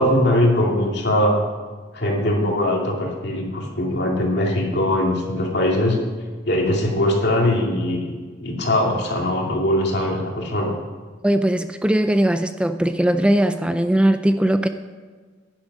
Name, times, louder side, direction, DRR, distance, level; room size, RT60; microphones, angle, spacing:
voice 1, 0.0-1.4 1.9-6.0 6.4-8.1 8.4-10.7, left 1 dB, 65° left, -1 dB, 2.5 m, -21 dB
voice 2, 11.2-14.7, right 1 dB, 5° right, 9 dB, 0.3 m, -19 dB
11.0 x 10.5 x 5.1 m, 1.5 s
head